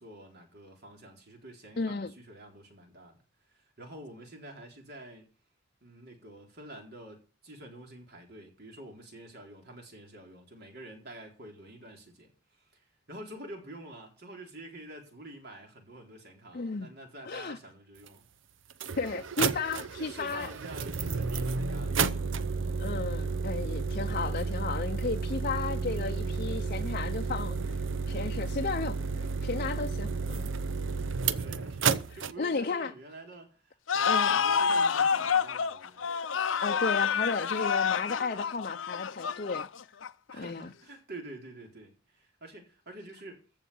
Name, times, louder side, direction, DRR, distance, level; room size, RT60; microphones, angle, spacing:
voice 1, 0.0-3.2 3.5-5.3 5.8-12.3 12.7-18.2 18.7-18.8 20.0-22.2 31.0-36.1 40.3-43.4, right 1 dB, 55° right, 3.9 m, -48 dB
voice 2, 1.8-2.1 16.5-16.9 17.2-17.6 19.0-20.5 22.8-27.8 28.1-30.5 32.1-32.9 34.1-34.4 36.6-39.7 40.3-40.7, left 4 dB, 45° left, 0.6 m, -34 dB
sound 1, 18.1-18.2 18.7-32.3, right 4 dB, 80° right, 0.7 m, -32 dB
sound 2, 33.9-40.3, left 6 dB, 85° left, 0.6 m, -28 dB
14.5 x 5.6 x 8.5 m
head